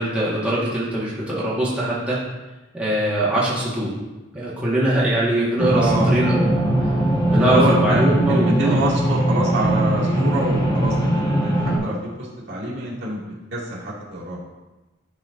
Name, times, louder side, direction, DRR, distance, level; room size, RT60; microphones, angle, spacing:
voice 1, 0.0-2.2 2.7-3.9 4.3-6.6 7.3-8.8, right 1 dB, 5° right, -9 dB, 1.4 m, -22 dB
sound 1, 5.6-11.8, right 1 dB, 25° left, 1.1 m, -20 dB
voice 2, 5.7-6.2 7.3-13.2 13.5-14.4, right 1 dB, 60° right, -7 dB, 2.1 m, -25 dB
11.5 x 4.0 x 2.5 m, 1.1 s
head